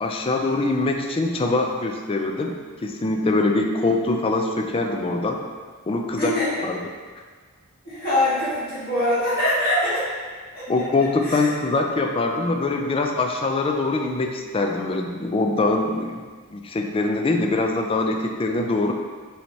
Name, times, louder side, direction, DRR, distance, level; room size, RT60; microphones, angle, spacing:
voice 1, 0.0-2.6 2.8-5.4 5.9-6.3 6.7-6.8 10.7-16.2 16.5-18.9, left 2 dB, 25° left, 3 dB, 0.3 m, -23 dB
voice 2, 6.2-6.6 7.8-10.0 10.5-10.6 11.0-11.5, left 1 dB, 45° left, -11 dB, 1.4 m, -23 dB
5.9 x 3.2 x 2.7 m, 1.5 s
head